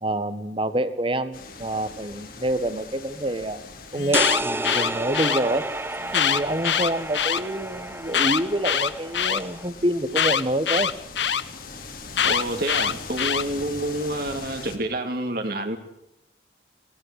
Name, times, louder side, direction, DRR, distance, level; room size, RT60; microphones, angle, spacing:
voice 1, 0.0-3.6 3.9-5.7 6.1-10.9, right 1 dB, 30° right, 12 dB, 1.6 m, -27 dB
sound 1, 1.3-14.8, left 4 dB, 50° left, 3.6 m, -42 dB
Alarm, 3.9-5.4 6.1-7.4 8.1-9.4 10.1-11.4 12.1-13.4, left 8 dB, 75° left, 1.2 m, -23 dB
sound 2, 4.1-9.7, right 2 dB, 10° right, 0.8 m, -31 dB
voice 2, 12.2-15.8, right 1 dB, 55° right, 4 dB, 2.5 m, -28 dB
24.0 x 18.5 x 8.4 m, 0.83 s
head